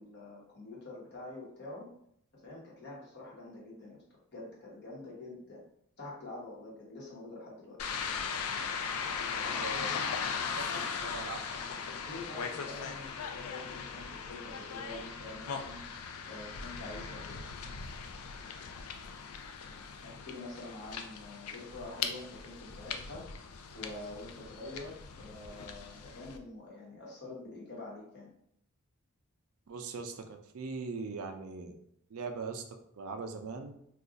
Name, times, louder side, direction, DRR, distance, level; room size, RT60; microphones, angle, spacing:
voice 1, 0.0-1.9 2.4-4.0 4.3-5.6 6.0-7.8 9.2-9.6 12.1-16.0 16.2-17.4 20.0-23.2 23.7-28.3, left 2 dB, 50° left, -3 dB, 1.0 m, -46 dB
sound 1, 7.8-26.4, left 6 dB, 85° left, 0.4 m, -39 dB
voice 2, 9.4-9.9 10.6-11.6 29.7-31.8 32.1-33.7, right 4 dB, 75° right, 6 dB, 0.4 m, -41 dB
2.4 x 2.3 x 3.8 m, 0.71 s
head